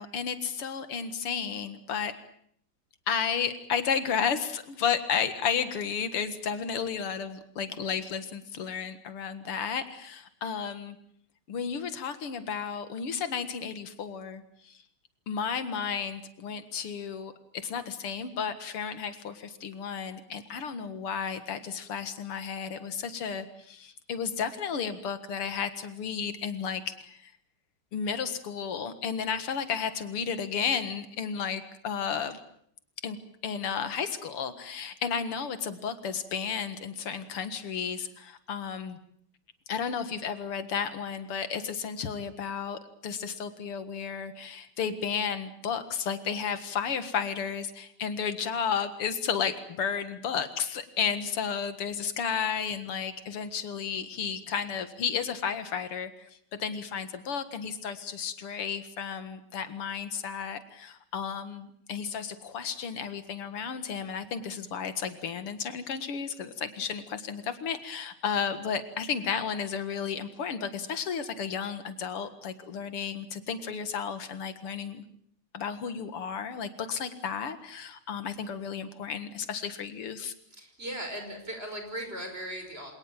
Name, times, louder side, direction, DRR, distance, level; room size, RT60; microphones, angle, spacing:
voice 1, 0.0-2.1 3.1-11.0 11.5-14.8 15.3-27.3 27.9-32.4 33.0-33.2 33.4-39.0 39.7-56.3 56.6-75.0 75.5-80.3, left 7 dB, 90° left, 11 dB, 2.7 m, -33 dB
voice 2, 80.5-82.9, right 1 dB, 25° right, 5 dB, 5.8 m, -38 dB
27.0 x 19.0 x 8.9 m, 0.66 s
omnidirectional pair, 2.4 m